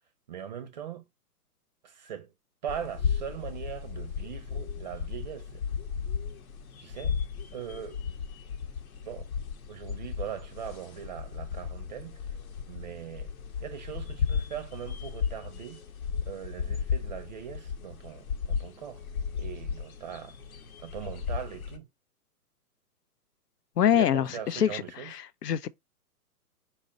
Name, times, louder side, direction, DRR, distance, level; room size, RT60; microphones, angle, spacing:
voice 1, 0.3-1.0 1.8-2.3 2.6-5.6 6.8-7.2 7.5-8.0 9.0-9.3 9.7-12.2 12.7-13.3 13.6-15.8 16.2-19.0 19.4-20.3 20.8-21.9 23.9-25.1, right 9 dB, 30° right, 0.5 m, -40 dB
sound 1, 2.7-21.8, left 6 dB, 65° left, 0.9 m, -35 dB
voice 2, 23.8-25.7, left 9 dB, 85° left, 0.5 m, -25 dB
4.2 x 2.3 x 3.6 m
hypercardioid pair, 125°, 46 cm